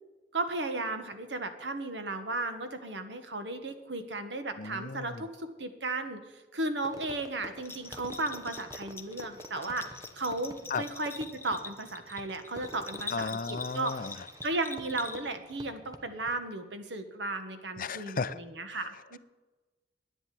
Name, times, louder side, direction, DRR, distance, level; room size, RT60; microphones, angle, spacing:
voice 1, 0.3-6.2 6.5-13.9 14.4-19.2, right 2 dB, 85° right, 8 dB, 1.6 m, -35 dB
voice 2, 4.6-5.3 10.7-10.8 13.1-14.3 17.8-18.4 18.7-18.9, left 4 dB, 50° left, 15 dB, 0.6 m, -35 dB
Fireworks, 6.8-16.4, equal, 20° right, 1.0 m, -49 dB
Bell, 7.6-15.5, left 4 dB, 15° left, 0.9 m, -44 dB
10.5 x 10.0 x 9.5 m, 1.2 s
head